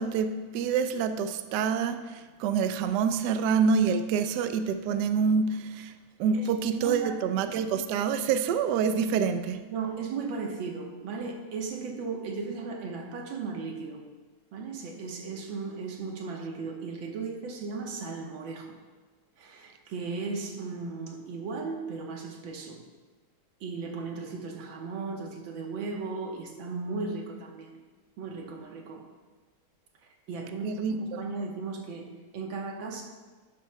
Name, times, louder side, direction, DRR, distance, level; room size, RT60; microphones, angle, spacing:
voice 1, 0.0-5.9 6.2-9.6 30.6-31.2, right 6 dB, 85° right, 9 dB, 0.9 m, -27 dB
voice 2, 6.3-7.2 9.7-14.0 14.5-18.8 19.4-22.8 23.6-27.8 28.2-29.1 30.3-30.8 31.2-33.0, right 4 dB, 65° right, 1 dB, 1.8 m, -36 dB
11.5 x 10.0 x 2.2 m, 1.3 s
omnidirectional pair, 2.4 m